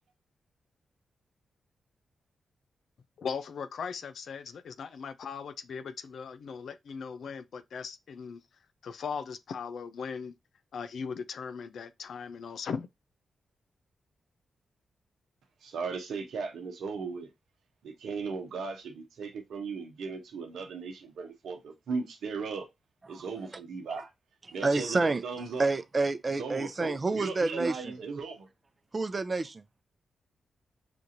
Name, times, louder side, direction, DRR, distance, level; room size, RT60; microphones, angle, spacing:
voice 1, 3.2-8.4 8.8-10.3 10.7-12.9, left 6 dB, 70° left, 0.4 m, -38 dB
voice 2, 15.6-17.3 17.8-22.7 23.1-24.1 24.5-25.7 26.4-28.5, right 5 dB, 80° right, 0.8 m, -37 dB
voice 3, 24.6-25.2 25.6-27.9 28.9-29.8, right 3 dB, 40° right, 0.6 m, -29 dB
6.0 x 2.5 x 2.7 m
supercardioid pair, 45°, 0 cm